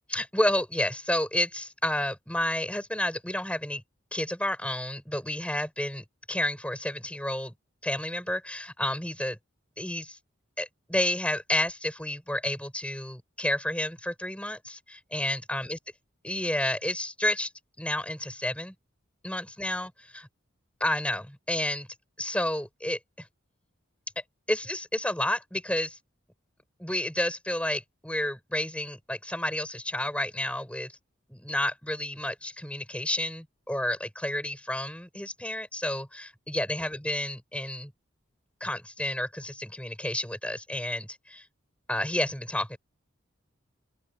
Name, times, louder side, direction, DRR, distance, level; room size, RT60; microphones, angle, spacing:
voice 1, 0.1-3.8 4.1-7.5 7.8-9.4 9.8-10.2 10.6-15.8 16.2-17.5 17.8-18.7 19.2-20.3 20.8-21.9 22.2-23.2 24.5-26.0 26.8-30.9 31.3-37.9 38.6-41.4 41.9-42.8, left 1 dB, 5° left, 6.4 m, -30 dB
open air
head